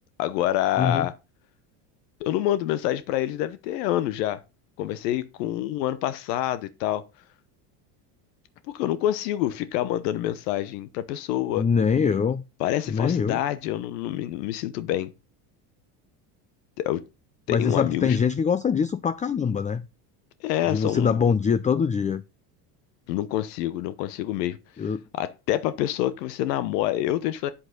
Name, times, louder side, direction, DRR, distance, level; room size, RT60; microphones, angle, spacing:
voice 1, 0.2-1.1 2.2-4.4 4.8-7.0 8.7-11.6 12.6-15.1 16.8-17.0 17.5-18.2 20.4-21.2 23.1-24.6 25.1-27.5, left 13 dB, 80° left, 1.0 m, -27 dB
voice 2, 11.6-12.4 12.9-13.4 17.5-19.9 20.7-22.2 24.8-25.0, left 6 dB, 15° left, 0.5 m, -23 dB
8.6 x 7.9 x 3.9 m
supercardioid pair, 95°, 48 cm